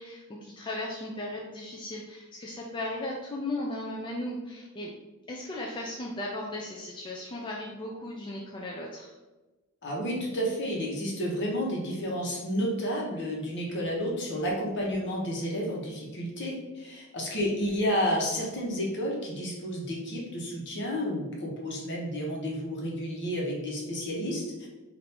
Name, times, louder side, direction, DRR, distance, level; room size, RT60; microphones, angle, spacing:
voice 1, 0.0-4.9 5.3-9.1, left 1 dB, 20° left, -2 dB, 0.3 m, -36 dB
voice 2, 9.8-24.7, equal, 55° left, -2 dB, 1.0 m, -31 dB
4.2 x 2.6 x 3.4 m, 1.1 s
head